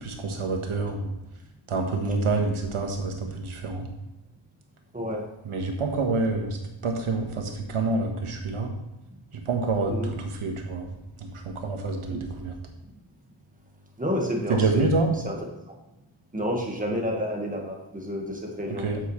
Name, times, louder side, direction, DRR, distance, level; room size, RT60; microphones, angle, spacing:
voice 1, 0.0-1.1 1.7-3.9 5.4-8.8 9.3-10.9 11.2-12.6 14.5-15.1 18.7-19.0, right 3 dB, 85° right, 2 dB, 1.6 m, -27 dB
voice 2, 14.0-14.9 15.2-15.3 16.3-18.9, equal, 15° right, 0 dB, 1.6 m, -29 dB
8.3 x 8.3 x 3.2 m, 0.93 s
wide cardioid pair, 140°, 49 cm